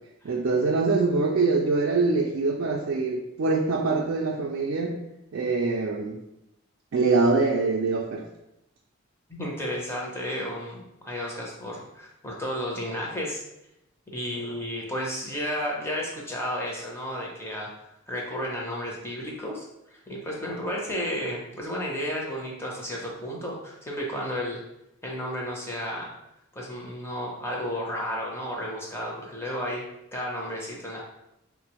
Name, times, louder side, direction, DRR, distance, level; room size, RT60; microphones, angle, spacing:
voice 1, 0.2-5.0 5.3-6.2 6.9-8.2, right 3 dB, 60° right, 0 dB, 0.3 m, -24 dB
voice 2, 9.3-13.4 14.1-17.7 18.1-24.6 25.0-26.1 26.5-29.8 30.1-31.0, equal, 10° left, -3 dB, 0.5 m, -32 dB
3.9 x 2.0 x 2.9 m, 0.87 s
head